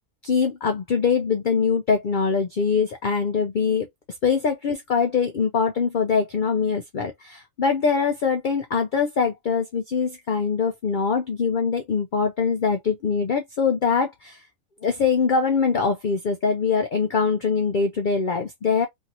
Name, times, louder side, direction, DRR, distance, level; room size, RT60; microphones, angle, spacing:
voice 1, 0.2-3.9 4.2-14.4 14.8-18.9, left 5 dB, 60° left, 0.5 m, -23 dB
2.9 x 2.7 x 2.7 m
omnidirectional pair, 1.4 m